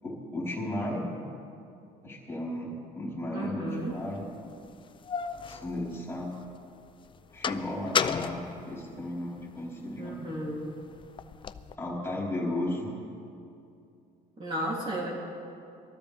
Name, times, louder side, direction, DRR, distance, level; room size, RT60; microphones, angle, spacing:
voice 1, 0.0-1.1 2.0-4.3 5.5-6.4 7.3-10.1 11.8-13.0, left 1 dB, 15° left, -5 dB, 4.3 m, -34 dB
voice 2, 3.3-3.9 10.0-10.7 14.4-15.1, right 1 dB, 30° right, -4 dB, 3.1 m, -33 dB
sound 1, 3.9-4.0 4.7-6.5 6.9-9.5 10.0-11.7, left 6 dB, 30° left, 0.5 m, -34 dB
22.5 x 14.0 x 3.5 m, 2.6 s
cardioid pair, 110°, 17 cm